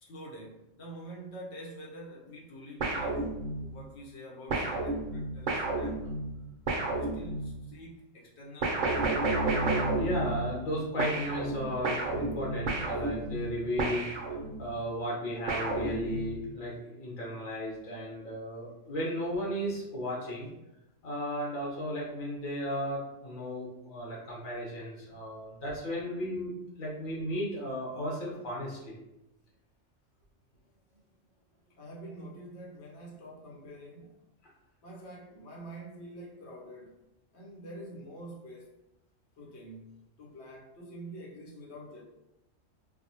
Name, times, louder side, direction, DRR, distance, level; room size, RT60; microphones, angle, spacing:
voice 1, 0.0-3.3 3.7-6.0 6.9-9.1 25.1-25.2 30.9-31.0 31.6-34.2 34.8-37.0 37.3-38.7 39.4-42.0, right 1 dB, 60° left, -3 dB, 1.0 m, -46 dB
sound 1, 2.8-3.8 4.5-7.7 8.6-10.7 11.0-14.8 15.5-16.5, right 2 dB, 70° right, 1.1 m, -31 dB
voice 2, 10.0-14.1 14.6-20.5 21.0-26.5 26.8-29.0, equal, 85° left, -4 dB, 1.4 m, -35 dB
4.5 x 2.1 x 2.8 m, 0.91 s
omnidirectional pair, 1.4 m